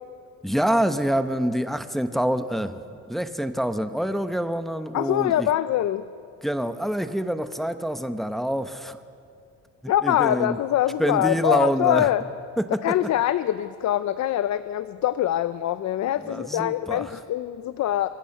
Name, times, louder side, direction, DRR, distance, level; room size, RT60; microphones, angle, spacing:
voice 1, 0.4-2.8 3.1-5.5 6.4-9.0 10.0-10.6 11.0-12.1 12.6-13.0 16.2-17.2, equal, ahead, 9 dB, 1.0 m, -26 dB
voice 2, 4.9-6.1 9.9-12.2 12.8-18.1, left 12 dB, 65° left, 13 dB, 0.6 m, -24 dB
25.5 x 16.0 x 6.6 m, 2.4 s
cardioid pair, 90°, 30 cm